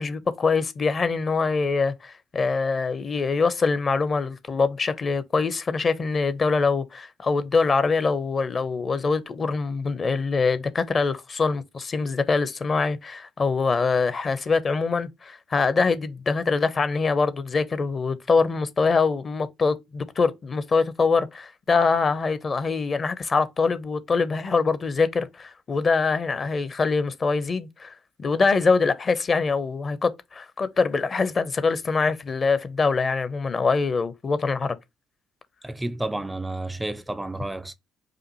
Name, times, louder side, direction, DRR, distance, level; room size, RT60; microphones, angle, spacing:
voice 1, 0.0-27.9 28.2-34.7, left 4 dB, 35° left, 0.6 m, -24 dB
voice 2, 35.6-37.7, right 2 dB, 10° right, 0.4 m, -31 dB
5.0 x 2.5 x 2.9 m
figure-of-eight pair, 50°, 0 cm